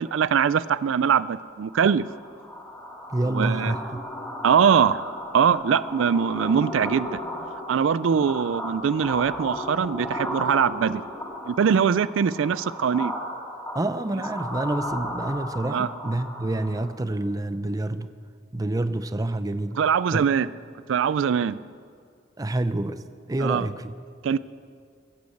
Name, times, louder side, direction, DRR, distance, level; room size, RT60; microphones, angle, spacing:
voice 1, 0.0-2.0 3.3-3.7 4.4-5.0 5.3-7.2 7.7-11.0 11.5-13.1 15.7-15.9 19.8-20.5 20.9-21.6 23.4-23.7 24.2-24.4, right 7 dB, 80° right, 17 dB, 0.4 m, -22 dB
sound 1, 1.7-17.0, left 1 dB, 15° left, 2.5 m, -35 dB
voice 2, 3.1-4.1 13.7-18.1 18.5-19.8 20.1-20.3 22.4-23.9, right 2 dB, 20° right, 12 dB, 0.5 m, -28 dB
21.0 x 8.5 x 7.9 m, 2.2 s
head